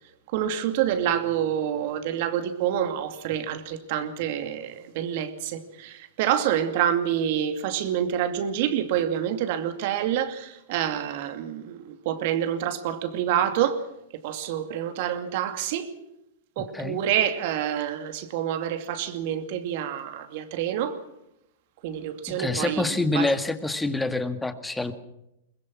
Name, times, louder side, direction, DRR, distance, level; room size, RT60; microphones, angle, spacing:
voice 1, 0.3-13.8 14.1-15.9 16.6-21.0 21.8-23.3, right 10 dB, 55° right, 2.5 m, -27 dB
voice 2, 22.4-24.9, left 2 dB, 5° left, 1.9 m, -26 dB
22.5 x 21.0 x 6.2 m
hypercardioid pair, 105°, 0 cm